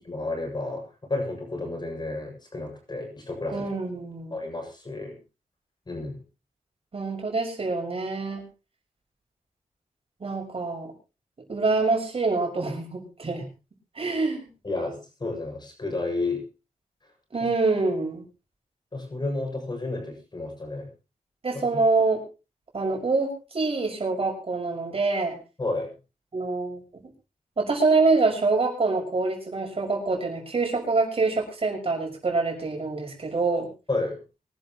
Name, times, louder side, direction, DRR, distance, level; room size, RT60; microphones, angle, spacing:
voice 1, 0.1-3.7 4.3-5.2 5.9-6.2 14.6-16.5 18.9-20.9 21.5-21.6 25.6-25.9 33.9-34.2, left 2 dB, 35° left, 2 dB, 7.3 m, -31 dB
voice 2, 3.5-4.4 6.9-8.5 10.2-10.9 11.5-13.5 13.9-14.5 17.3-18.3 21.4-22.2 22.7-25.4 26.3-27.0 27.6-33.7, right 3 dB, 45° right, 0 dB, 6.3 m, -25 dB
25.0 x 12.0 x 3.1 m, 0.30 s
wide cardioid pair, 115°, 14 cm